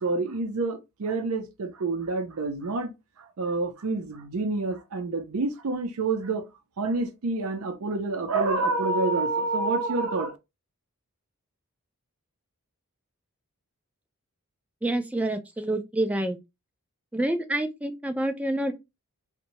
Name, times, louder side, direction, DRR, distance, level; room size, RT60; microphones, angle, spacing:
voice 1, 0.0-2.9 3.2-6.5 6.8-10.4, right 3 dB, 70° right, 0.5 m, -28 dB
voice 2, 14.8-16.4 17.1-18.7, right 1 dB, 5° right, 0.3 m, -27 dB
2.6 x 2.1 x 2.9 m
head